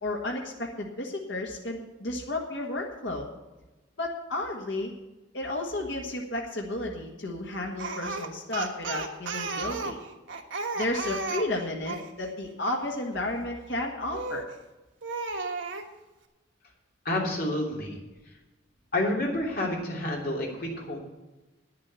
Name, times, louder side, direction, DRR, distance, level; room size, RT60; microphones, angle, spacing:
voice 1, 0.0-3.3 4.0-4.9 5.3-10.0 10.8-14.4, left 2 dB, 70° left, -1 dB, 1.6 m, -32 dB
Speech, 7.8-12.1 14.1-14.5 15.0-15.9, right 4 dB, 85° right, 1.4 m, -34 dB
voice 2, 17.0-18.0 18.9-21.0, left 1 dB, 55° left, -2 dB, 3.2 m, -29 dB
10.0 x 7.6 x 8.1 m, 1.1 s
head